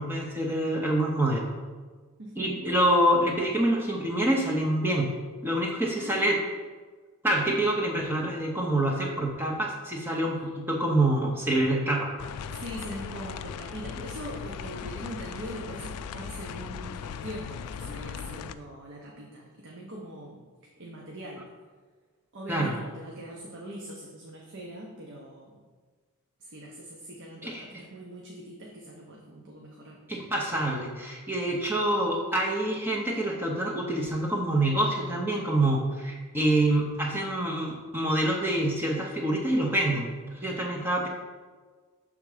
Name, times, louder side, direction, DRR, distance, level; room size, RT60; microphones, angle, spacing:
voice 1, 0.0-1.5 2.4-5.1 5.4-6.4 7.2-12.1 22.5-22.7 27.4-27.7 30.1-41.1, right 1 dB, 10° right, -2 dB, 0.6 m, -26 dB
voice 2, 2.2-2.5 6.0-6.3 12.5-20.4 20.8-21.4 22.3-25.6 26.4-30.0, right 1 dB, 55° right, -2 dB, 0.7 m, -41 dB
sound 1, 12.2-18.5, left 7 dB, 85° left, 0.3 m, -38 dB
6.4 x 3.5 x 4.9 m, 1.4 s
head